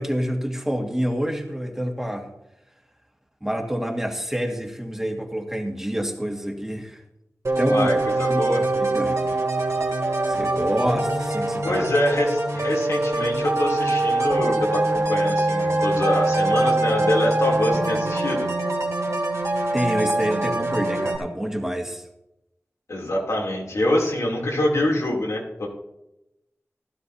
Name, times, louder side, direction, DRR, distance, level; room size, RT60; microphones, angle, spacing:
voice 1, 0.0-2.3 3.4-7.0 7.6-7.9 8.3-8.4 8.8-9.2 10.2-11.9 19.7-22.0, equal, 10° right, 1 dB, 1.9 m, -27 dB
sound 1, 7.4-21.2, right 2 dB, 70° right, 2.6 m, -23 dB
voice 2, 7.7-8.7 11.6-18.5 22.9-25.7, left 1 dB, 85° left, -2 dB, 2.9 m, -25 dB
15.5 x 12.0 x 2.8 m, 0.89 s
wide cardioid pair, 55°, 5 cm